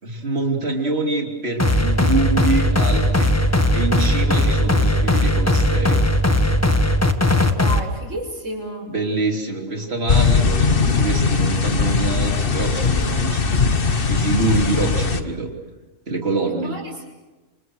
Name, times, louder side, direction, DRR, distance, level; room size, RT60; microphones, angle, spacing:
voice 1, 0.0-3.3 3.7-6.0 8.9-13.6 13.9-15.5 16.1-16.7, right 3 dB, 50° right, 2 dB, 3.6 m, -25 dB
sound 1, 1.6-7.8, left 1 dB, 10° left, 1.4 m, -18 dB
voice 2, 7.5-8.9 16.6-17.1, equal, 65° right, 3 dB, 5.8 m, -31 dB
sound 2, 10.1-15.2, left 5 dB, 45° left, 1.5 m, -19 dB
28.5 x 27.0 x 6.4 m, 1.2 s
omnidirectional pair, 1.4 m